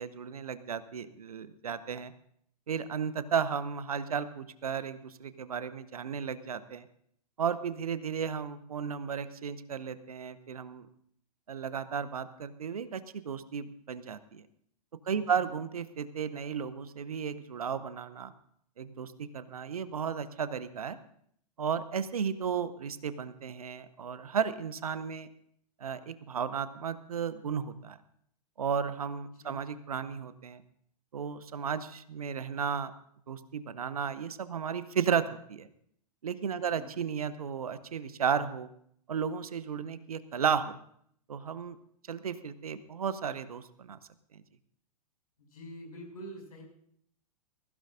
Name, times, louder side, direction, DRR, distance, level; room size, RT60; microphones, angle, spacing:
voice 1, 0.0-2.1 2.7-6.9 7.4-10.9 11.5-14.4 15.0-18.3 18.8-21.0 21.6-25.3 25.8-28.0 28.6-30.6 31.1-32.9 33.3-35.7 36.2-38.7 39.1-40.8 41.3-41.8 42.1-44.0 44.3-44.4, right 7 dB, 65° right, 14 dB, 0.9 m, -34 dB
voice 2, 15.1-15.5 29.4-29.6 36.7-36.9 45.5-46.6, equal, 65° left, 0 dB, 6.4 m, -46 dB
20.5 x 16.0 x 2.6 m, 0.66 s
figure-of-eight pair, 105°, 20 cm